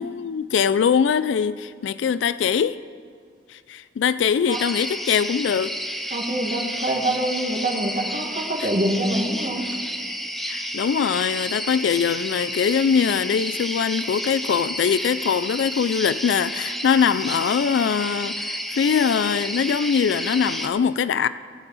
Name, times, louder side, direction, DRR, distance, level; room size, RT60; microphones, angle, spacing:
voice 1, 0.0-2.8 3.5-5.7 8.6-8.7 10.5-21.3, left 7 dB, 80° left, 15 dB, 0.3 m, -22 dB
sound 1, 4.5-20.7, equal, ahead, 0.5 m, -31 dB
voice 2, 6.1-9.7, right 1 dB, 45° right, -1 dB, 1.9 m, -25 dB
18.0 x 8.2 x 4.1 m, 2.2 s
head